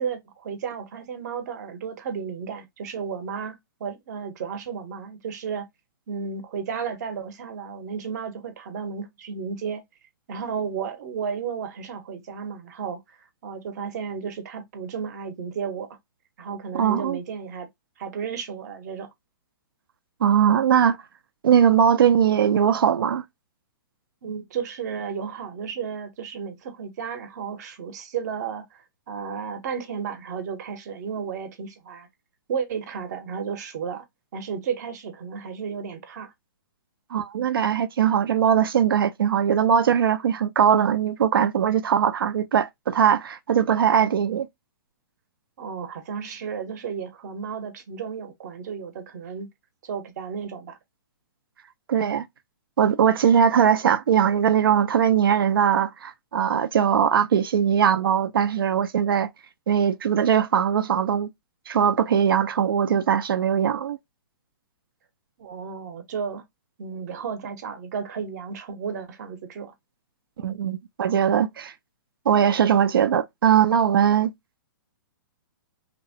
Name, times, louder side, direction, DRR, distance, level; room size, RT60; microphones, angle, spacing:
voice 1, 0.0-5.7 6.1-9.8 10.3-13.0 13.4-16.0 16.4-17.7 18.0-19.1 24.2-28.8 29.1-32.1 32.5-34.0 34.3-36.3 45.6-49.5 49.8-50.8 65.4-66.4 66.8-69.7, right 6 dB, 50° right, 0.7 m, -33 dB
voice 2, 16.7-17.2 20.2-21.0 21.4-23.2 37.1-44.5 51.9-52.3 52.8-59.3 59.7-61.3 61.7-64.0 70.4-71.7 72.3-74.3, right 8 dB, 90° right, 0.4 m, -20 dB
2.8 x 2.0 x 2.6 m
hypercardioid pair, 145°, 12 cm